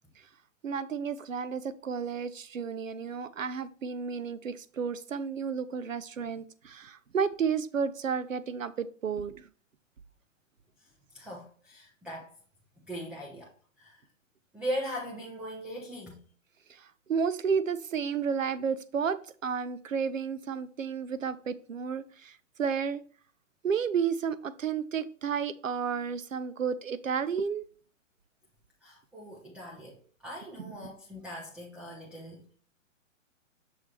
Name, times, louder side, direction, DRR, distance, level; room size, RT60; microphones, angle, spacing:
voice 1, 0.6-9.5 16.7-23.0 23.6-27.6, right 6 dB, 85° right, 14 dB, 0.6 m, -32 dB
voice 2, 11.1-12.3 12.9-13.5 13.8-14.0 14.5-16.2 28.8-32.5, equal, 5° right, -4 dB, 0.5 m, -39 dB
6.5 x 3.5 x 4.3 m, 0.44 s
figure-of-eight pair, 120°, 38 cm